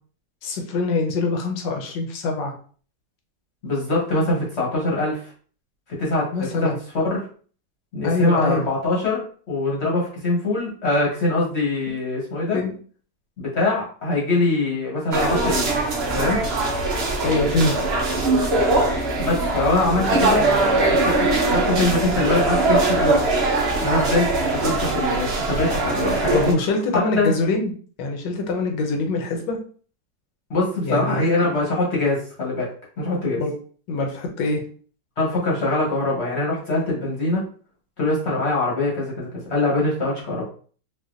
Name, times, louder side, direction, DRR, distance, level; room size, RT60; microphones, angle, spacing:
voice 1, 0.4-2.5 6.3-6.7 8.0-8.6 12.5-12.7 17.2-17.7 26.3-27.7 28.0-29.6 30.8-31.5 33.4-33.5 33.9-34.6, left 3 dB, 80° left, 3 dB, 1.4 m, -24 dB
voice 2, 3.6-5.3 6.0-6.7 7.0-7.2 7.9-12.6 13.4-15.7 16.1-16.4 19.2-20.4 20.9-23.2 23.8-26.6 26.9-27.3 30.5-32.7 33.0-33.4 35.2-37.4 38.0-40.4, left 2 dB, 45° left, -4 dB, 1.0 m, -23 dB
sound 1, 15.1-26.5, right 2 dB, 90° right, 0.5 m, -21 dB
3.9 x 2.5 x 2.5 m, 0.43 s
omnidirectional pair, 2.0 m